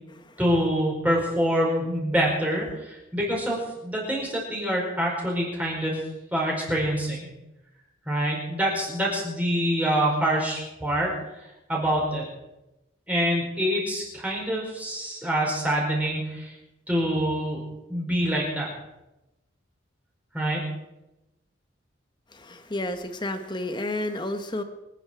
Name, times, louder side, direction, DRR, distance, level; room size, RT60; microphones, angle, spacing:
voice 1, 0.4-6.0 6.3-7.3 8.0-11.1 11.7-12.3 13.1-16.5 16.9-17.6 17.9-18.7 20.3-20.7, equal, 10° right, -3 dB, 4.7 m, -26 dB
voice 2, 22.3-24.6, left 1 dB, 25° left, 8 dB, 1.1 m, -31 dB
25.0 x 9.9 x 4.6 m, 0.97 s
head